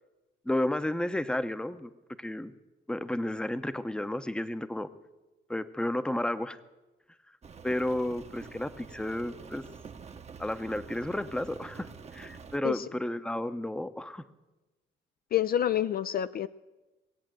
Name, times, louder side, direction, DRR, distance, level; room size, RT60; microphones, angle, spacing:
voice 1, 0.5-1.9 2.2-2.5 2.9-4.9 5.5-6.6 7.6-9.7 10.4-14.2, left 1 dB, 5° left, 12 dB, 0.7 m, -32 dB
Rain, 7.4-12.6, right 5 dB, 35° right, 0.9 m, -47 dB
voice 2, 15.3-16.5, left 11 dB, 50° left, 13 dB, 0.4 m, -28 dB
19.0 x 8.2 x 7.6 m, 1.1 s
cardioid pair, 90°, 20 cm